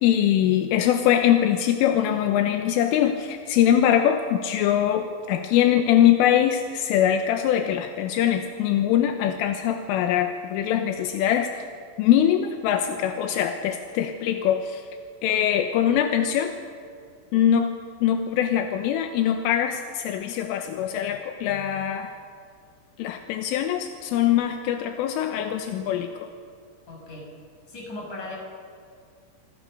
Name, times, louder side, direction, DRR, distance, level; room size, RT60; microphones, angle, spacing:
voice 1, 0.0-11.7 12.0-14.9 15.2-16.5 17.3-22.2 23.0-26.3, left 10 dB, 80° left, 6 dB, 3.6 m, -22 dB
voice 2, 26.9-27.3 27.7-28.4, left 2 dB, 35° left, -1 dB, 7.6 m, -37 dB
27.0 x 25.5 x 6.7 m, 2.3 s
omnidirectional pair, 5.9 m